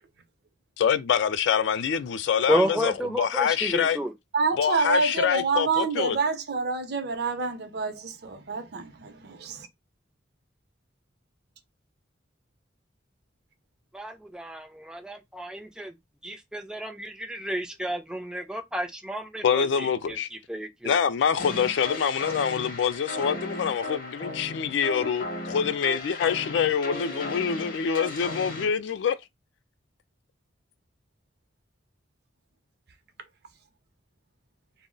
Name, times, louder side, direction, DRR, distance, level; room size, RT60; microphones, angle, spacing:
voice 1, 0.8-4.0 4.6-6.2 19.4-20.3 20.8-29.2, left 7 dB, 75° left, 0.3 m, -25 dB
voice 2, 2.5-4.1 13.9-15.9 16.2-20.2 20.5-21.0, right 1 dB, 5° right, 0.3 m, -31 dB
voice 3, 4.3-9.7, right 4 dB, 60° right, 0.5 m, -27 dB
sound 1, 21.4-28.7, left 2 dB, 50° left, 0.7 m, -36 dB
2.2 x 2.0 x 3.6 m
head